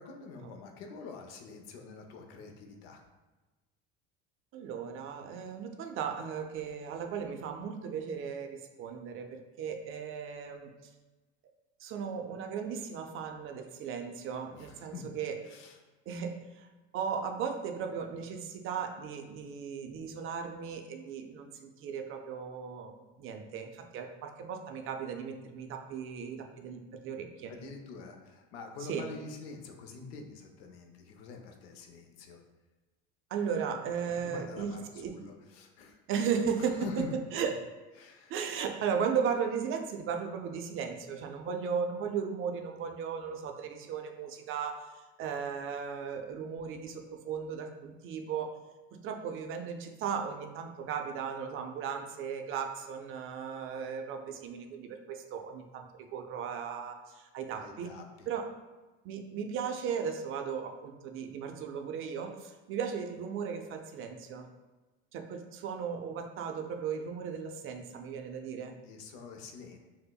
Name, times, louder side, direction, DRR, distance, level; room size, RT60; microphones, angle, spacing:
voice 1, 0.0-3.0 14.5-15.1 15.4-15.8 27.5-32.4 34.0-36.0 36.6-37.1 38.0-38.3 57.6-58.3 68.8-69.8, left 4 dB, 85° left, 4 dB, 0.6 m, -46 dB
voice 2, 4.5-10.7 11.8-15.4 16.1-16.7 16.9-27.5 28.8-29.1 33.3-35.2 36.1-37.6 38.3-44.8 45.2-48.5 49.0-57.9 58.3-58.5 59.0-64.5 65.1-68.7, right 6 dB, 45° right, 5 dB, 0.4 m, -36 dB
5.5 x 2.0 x 2.2 m, 1.2 s
supercardioid pair, 115°, 30 cm